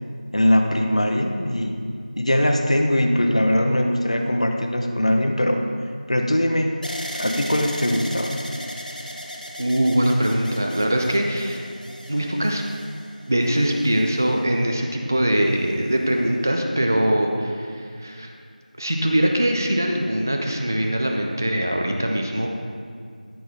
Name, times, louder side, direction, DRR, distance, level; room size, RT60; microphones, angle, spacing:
voice 1, 0.3-1.8 2.2-5.6 6.1-6.7 7.1-8.4, left 1 dB, 45° left, 4 dB, 0.9 m, -21 dB
sound 1, 6.8-14.8 15.5-16.2, equal, 70° left, 1.5 m, -37 dB
voice 2, 9.6-11.6 12.1-12.6 13.3-18.3 18.8-22.5, right 1 dB, 20° right, 2 dB, 0.6 m, -22 dB
13.5 x 6.0 x 4.4 m, 2.2 s
figure-of-eight pair, 175°, 5 cm